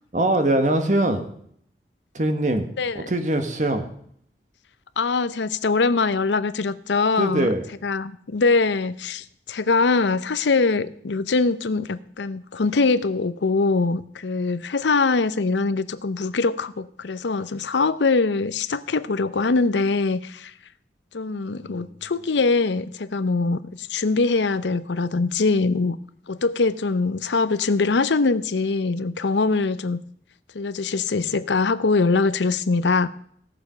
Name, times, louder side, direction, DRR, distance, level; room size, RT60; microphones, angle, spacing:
voice 1, 0.1-1.2 2.1-3.9 7.2-7.6 21.6-22.0, right 1 dB, 45° right, 7 dB, 1.4 m, -23 dB
voice 2, 5.0-7.5 7.8-20.5 21.1-26.0 26.3-30.0 30.5-33.1, left 3 dB, 90° left, 14 dB, 0.6 m, -22 dB
16.0 x 6.9 x 5.7 m, 0.66 s
head